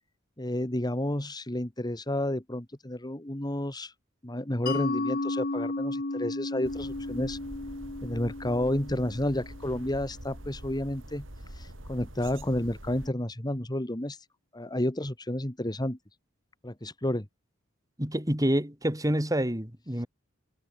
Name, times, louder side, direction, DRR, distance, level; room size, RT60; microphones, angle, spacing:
voice 1, 0.4-3.9 4.2-7.4 8.0-11.2 11.5-14.2 14.5-16.0 16.6-17.3, left 1 dB, 20° left, 2.0 m, -31 dB
Mallet percussion, 4.7-10.0, left 2 dB, 50° left, 1.5 m, -34 dB
sound 1, 6.6-13.1, right 1 dB, 70° right, 7.6 m, -45 dB
voice 2, 18.0-20.1, equal, 20° right, 4.9 m, -27 dB
head